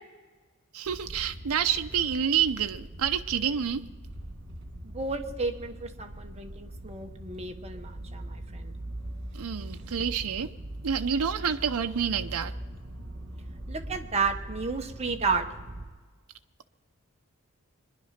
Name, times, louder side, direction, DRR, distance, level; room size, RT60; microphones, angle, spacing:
voice 1, 0.7-3.8 9.3-10.5 10.8-12.5, right 7 dB, 85° right, 7 dB, 0.6 m, -28 dB
sound 1, 0.8-15.9, right 1 dB, 55° right, 2.4 m, -41 dB
voice 2, 4.8-8.7 13.7-15.5, right 4 dB, 30° right, 4 dB, 1.1 m, -32 dB
23.0 x 10.5 x 5.8 m, 1.3 s
head